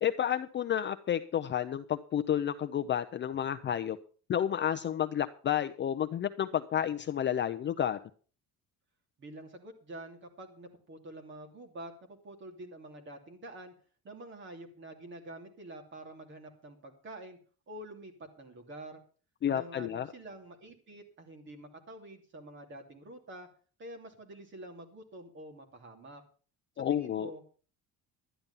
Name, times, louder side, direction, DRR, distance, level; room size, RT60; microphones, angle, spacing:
voice 1, 0.0-4.0 4.3-8.0 19.4-20.1 26.8-27.3, left 10 dB, 30° left, 10 dB, 0.6 m, -31 dB
voice 2, 9.2-13.7 14.0-17.4 17.7-19.0 19.5-23.5 23.8-26.2 26.8-27.6, right 1 dB, 30° right, 4 dB, 2.7 m, -47 dB
12.5 x 10.5 x 5.5 m, 0.40 s
cardioid pair, 175°, 36 cm